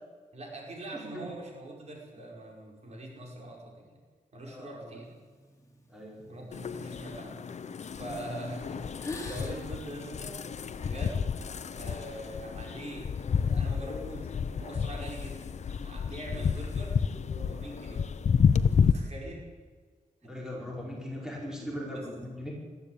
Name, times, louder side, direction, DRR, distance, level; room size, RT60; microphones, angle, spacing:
voice 1, 0.3-3.9 4.3-5.1 6.3-7.4 8.0-10.4 10.8-11.3 11.7-13.1 13.3-15.4 15.8-16.9 17.3-18.0 18.7-19.5 20.2-20.3 21.9-22.1, right 1 dB, 50° right, 0 dB, 5.3 m, -43 dB
voice 2, 0.9-1.3 4.5-5.0 5.9-6.4 16.3-16.5 20.2-22.5, left 1 dB, 5° right, -3 dB, 5.2 m, -40 dB
sound 1, 5.0-7.7 8.3-8.6 8.8-10.8, left 2 dB, 20° left, 3.6 m, -45 dB
sound 2, 6.5-18.9, left 6 dB, 55° left, 0.8 m, -30 dB
21.0 x 14.0 x 8.8 m, 1.5 s
wide cardioid pair, 175°, 14 cm